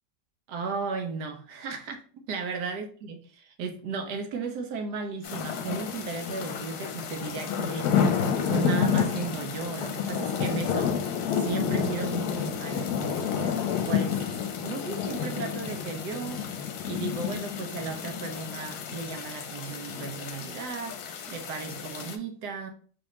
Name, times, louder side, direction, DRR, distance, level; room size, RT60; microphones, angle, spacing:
voice 1, 0.5-3.2 3.5-8.0 8.5-14.2 14.6-16.5 16.8-21.0 21.3-22.7, right 5 dB, 70° right, 1.3 m, -35 dB
sound 1, 5.2-22.1, left 7 dB, 70° left, 1.1 m, -30 dB
5.0 x 3.5 x 3.1 m
omnidirectional pair, 1.9 m